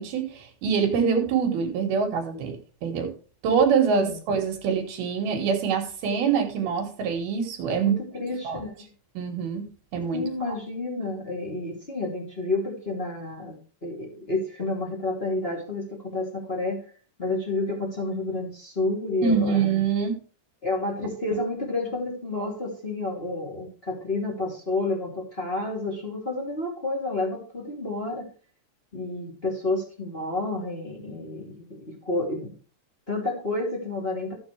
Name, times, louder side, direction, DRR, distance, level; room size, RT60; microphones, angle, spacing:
voice 1, 0.0-3.1 3.4-8.0 8.4-8.6 9.1-10.5 19.2-20.2, right 6 dB, 65° right, 3 dB, 3.1 m, -25 dB
voice 2, 3.9-4.3 7.9-8.9 10.1-16.8 17.2-19.7 20.6-28.3 28.9-32.5 33.1-34.4, left 2 dB, 20° left, -1 dB, 1.8 m, -30 dB
13.5 x 7.7 x 3.2 m, 0.40 s
omnidirectional pair, 5.0 m